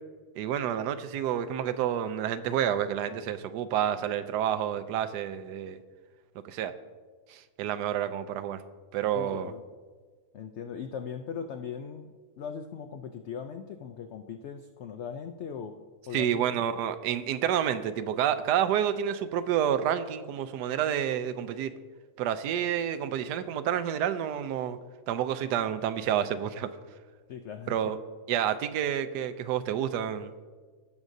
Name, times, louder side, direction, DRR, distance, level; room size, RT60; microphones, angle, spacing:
voice 1, 0.4-5.8 6.4-6.7 7.3-8.6 8.9-9.5 16.1-21.7 22.2-24.8 25.1-26.7 27.7-28.0 28.3-30.3, right 9 dB, 85° right, 11 dB, 1.2 m, -29 dB
voice 2, 9.1-9.7 10.3-12.1 12.4-15.8 16.1-16.6 27.3-28.0, left 7 dB, 80° left, 6 dB, 0.6 m, -39 dB
17.0 x 6.1 x 2.6 m, 1.5 s
omnidirectional pair, 1.7 m